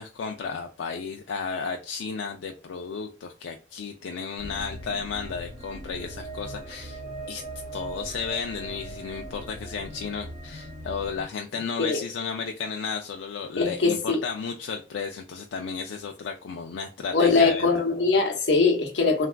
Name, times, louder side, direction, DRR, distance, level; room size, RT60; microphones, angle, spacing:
voice 1, 0.0-7.0 7.3-7.4 7.7-17.7, left 5 dB, 85° left, 0.4 m, -33 dB
sound 1, 4.4-11.2, right 1 dB, 30° right, 1.0 m, -39 dB
voice 2, 13.6-14.2 17.1-19.3, left 4 dB, 65° left, 0.8 m, -22 dB
3.4 x 2.3 x 2.2 m
head